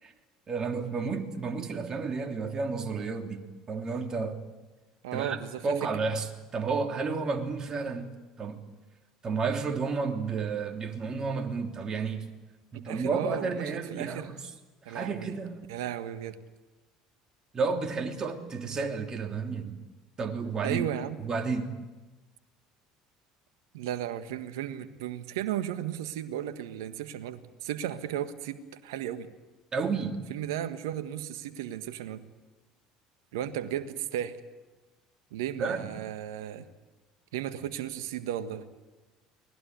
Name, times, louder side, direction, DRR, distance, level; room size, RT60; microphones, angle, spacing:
voice 1, 0.5-4.4 5.1-8.6 9.2-12.3 12.7-14.3 14.9-15.7 17.5-19.8 20.2-20.9 21.2-21.8 29.7-30.2 35.6-35.9, right 4 dB, 35° right, 4 dB, 3.1 m, -31 dB
voice 2, 5.0-5.6 12.8-14.3 14.8-15.3 15.7-16.4 20.6-21.2 23.7-29.3 30.3-32.2 33.3-34.4 35.3-36.7 37.3-38.7, right 11 dB, 75° right, 11 dB, 1.4 m, -35 dB
24.0 x 19.0 x 9.5 m, 1.2 s
hypercardioid pair, 65°, 2 cm